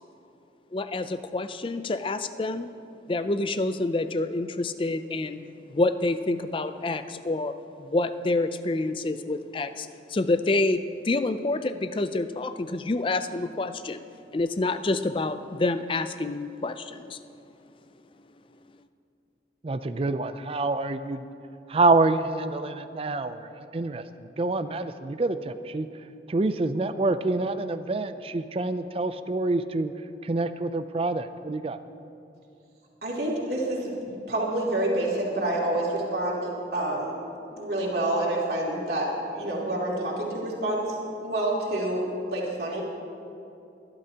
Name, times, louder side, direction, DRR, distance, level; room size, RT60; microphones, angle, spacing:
voice 1, 0.7-2.7 3.1-5.4 5.7-14.1 14.3-17.2, left 2 dB, 30° left, 11 dB, 0.4 m, -28 dB
voice 2, 19.6-21.2 21.7-24.0 24.4-25.9 26.3-29.9 30.2-31.8, right 3 dB, 30° right, 11 dB, 0.4 m, -26 dB
voice 3, 33.0-37.1 37.5-41.0 41.2-42.8, right 1 dB, 60° right, -4 dB, 2.9 m, -28 dB
24.0 x 12.0 x 2.9 m, 2.7 s
head